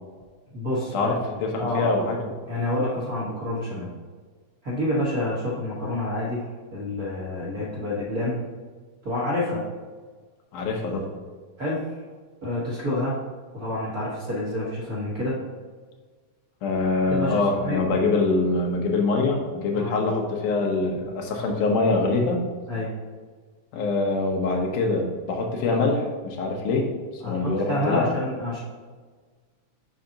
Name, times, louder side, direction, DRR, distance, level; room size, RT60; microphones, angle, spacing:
voice 1, 0.5-3.9 4.6-8.5 9.0-9.6 11.6-11.9 12.4-13.2 13.5-15.4 17.1-18.0 19.7-20.0 22.7-22.9 27.2-28.6, left 1 dB, 50° right, -7 dB, 1.0 m, -28 dB
voice 2, 1.4-2.2 10.5-11.1 16.6-22.4 23.7-26.9 27.1-28.0, left 3 dB, 85° left, 1 dB, 2.5 m, -24 dB
5.8 x 5.5 x 3.8 m, 1.5 s
omnidirectional pair, 3.5 m